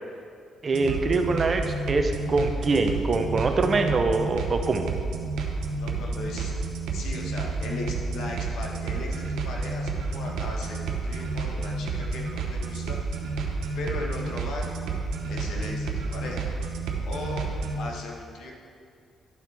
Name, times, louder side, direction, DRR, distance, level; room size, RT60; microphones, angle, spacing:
voice 1, 0.6-4.8, right 3 dB, 40° right, 5 dB, 0.6 m, -24 dB
Volca beats house, 0.7-17.9, right 3 dB, 90° right, 0.8 m, -30 dB
voice 2, 5.8-6.6 6.9-13.0 13.7-14.8 15.3-16.5 17.0-17.4 17.8-18.5, left 2 dB, 75° left, -1 dB, 1.3 m, -37 dB
11.5 x 4.5 x 3.5 m, 2.2 s
cardioid pair, 90°, 0 cm